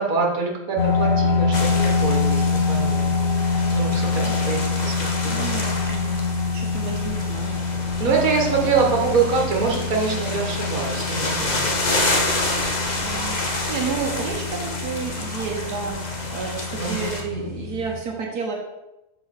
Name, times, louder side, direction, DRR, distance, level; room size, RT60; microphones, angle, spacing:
voice 1, 0.0-3.1 3.7-5.8 8.0-11.8 16.8-17.1 17.4-17.5, right 5 dB, 65° right, -1 dB, 1.9 m, -25 dB
sound 1, 0.8-18.0, left 4 dB, 55° left, 0.7 m, -25 dB
sound 2, 1.5-17.2, left 2 dB, 30° left, 1.1 m, -29 dB
voice 2, 5.2-7.6 8.9-9.0 13.0-13.4 13.7-15.9 16.3-18.5, right 5 dB, 90° right, 0 dB, 1.6 m, -31 dB
6.4 x 4.8 x 6.4 m, 0.97 s
omnidirectional pair, 1.6 m